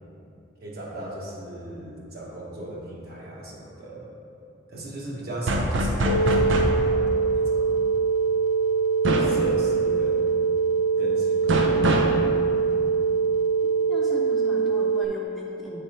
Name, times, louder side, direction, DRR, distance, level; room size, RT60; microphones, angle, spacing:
voice 1, 0.6-4.1 4.7-7.8 9.2-10.4 11.0-11.7, right 1 dB, 55° right, -3 dB, 1.2 m, -36 dB
sound 1, 5.5-6.8 9.0-9.4 11.5-12.2, right 1 dB, 90° right, 0.6 m, -23 dB
sound 2, 6.0-15.1, right 5 dB, 75° left, 0.6 m, -23 dB
voice 2, 13.9-15.8, equal, ahead, -5 dB, 0.6 m, -37 dB
8.0 x 3.5 x 4.4 m, 2.6 s
head